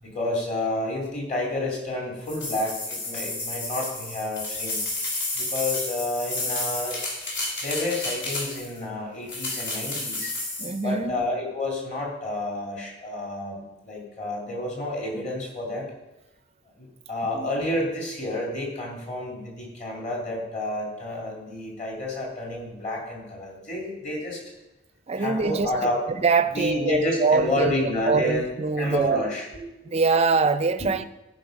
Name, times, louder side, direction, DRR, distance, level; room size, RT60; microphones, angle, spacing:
voice 1, 0.0-4.8 5.3-7.0 7.6-10.3 10.8-15.9 16.8-24.4 25.2-26.0 26.5-28.5 28.8-29.7, left 1 dB, 40° left, -2 dB, 2.9 m, -30 dB
sound 1, 2.3-8.8 9.3-10.8, left 2 dB, 60° left, 3.6 m, -31 dB
voice 2, 10.6-11.2 17.3-17.6 25.1-25.9 26.2-29.3 29.8-31.0, right 4 dB, 30° right, 12 dB, 0.5 m, -24 dB
14.5 x 5.2 x 5.2 m, 0.99 s
head